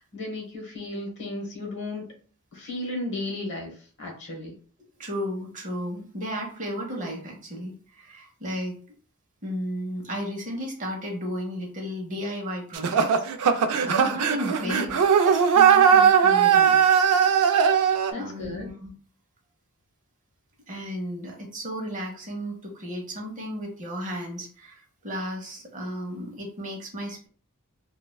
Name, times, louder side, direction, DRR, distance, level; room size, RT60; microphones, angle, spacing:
voice 1, 0.0-2.0 2.5-3.7 4.0-4.5 14.6-15.0 18.1-18.7, left 2 dB, 55° left, 0 dB, 1.0 m, -34 dB
voice 2, 5.0-8.8 9.4-13.1 13.4-16.8 18.1-18.9 20.7-27.3, equal, 35° right, 1 dB, 0.7 m, -34 dB
sound 1, 12.7-18.1, right 7 dB, 90° right, 0.4 m, -19 dB
3.1 x 2.2 x 2.2 m, 0.44 s
head